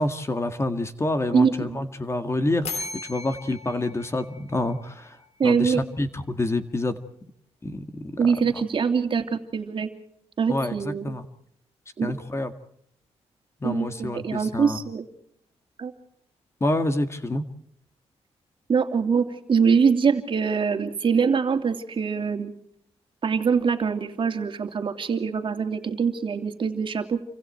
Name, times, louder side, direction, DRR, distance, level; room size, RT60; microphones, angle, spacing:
voice 1, 0.0-5.2 5.4-7.0 7.6-8.0 10.5-11.2 12.0-12.5 13.6-14.8 16.6-17.4, left 2 dB, 25° left, 9 dB, 1.9 m, -27 dB
voice 2, 1.3-1.8 5.4-5.8 8.2-9.9 10.4-11.1 12.0-12.1 13.6-15.1 15.8-15.9 18.7-22.5 23.2-27.2, right 6 dB, 50° right, 6 dB, 2.8 m, -23 dB
sound 1, 2.6-5.4, left 4 dB, 80° left, 3.8 m, -37 dB
29.5 x 25.5 x 4.5 m, 0.71 s
cardioid pair, 100°, 11 cm